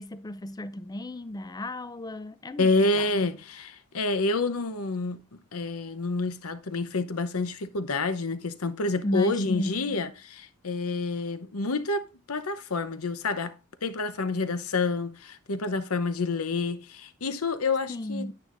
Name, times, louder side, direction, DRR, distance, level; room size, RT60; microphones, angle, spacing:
voice 1, 0.0-3.2 9.0-9.9 17.9-18.3, left 1 dB, 20° left, 0.4 m, -34 dB
voice 2, 2.6-5.2 5.5-13.6 13.8-18.3, left 3 dB, 75° left, 0.8 m, -28 dB
9.8 x 9.1 x 2.5 m
head